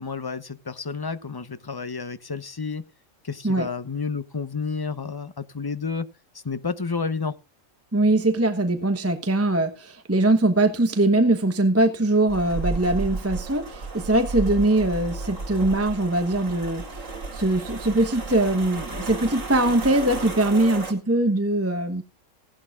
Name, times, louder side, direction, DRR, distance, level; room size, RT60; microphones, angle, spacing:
voice 1, 0.0-2.8 3.2-6.1 6.4-7.3, left 5 dB, 20° left, 0.8 m, -30 dB
voice 2, 7.9-22.0, right 2 dB, 10° right, 1.0 m, -22 dB
sound 1, 12.3-20.9, right 3 dB, 70° right, 2.7 m, -33 dB
17.0 x 11.5 x 2.5 m
omnidirectional pair, 1.4 m